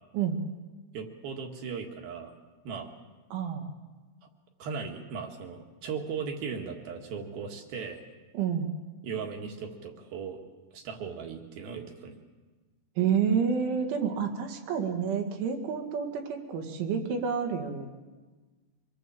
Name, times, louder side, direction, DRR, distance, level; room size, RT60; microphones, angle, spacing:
voice 1, 0.9-2.3 2.6-2.9 4.6-8.0 9.0-10.4 10.7-12.1, right 6 dB, 60° right, 3 dB, 3.2 m, -37 dB
voice 2, 3.3-3.7 8.3-8.7 13.0-17.9, right 7 dB, 80° right, 5 dB, 4.3 m, -29 dB
24.5 x 19.5 x 7.5 m, 1.3 s
omnidirectional pair, 5.5 m